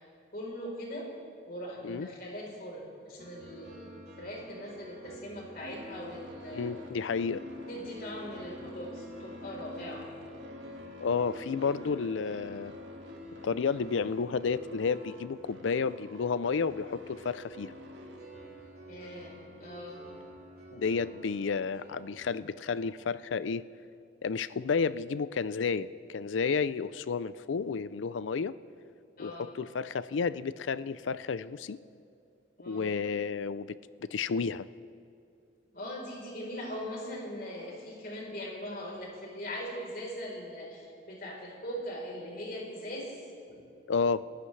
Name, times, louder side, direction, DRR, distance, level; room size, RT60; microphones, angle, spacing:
voice 1, 0.3-1.1 1.5-3.9 4.2-6.7 7.7-10.1 18.9-20.0 29.2-29.5 32.6-32.9 35.7-43.2 43.5-43.6, equal, 50° left, -2 dB, 3.9 m, -41 dB
sound 1, 3.2-22.9, equal, 60° right, 3.5 m, -48 dB
sound 2, 5.6-18.2, left 2 dB, 85° right, 1.6 m, -50 dB
voice 2, 6.5-7.4 11.0-12.7 13.4-17.8 20.7-23.7 24.2-28.5 29.2-31.8 32.7-33.8 34.1-34.7 43.9-44.2, left 5 dB, 90° left, 16 dB, 0.5 m, -31 dB
28.5 x 15.0 x 3.3 m, 2.5 s
head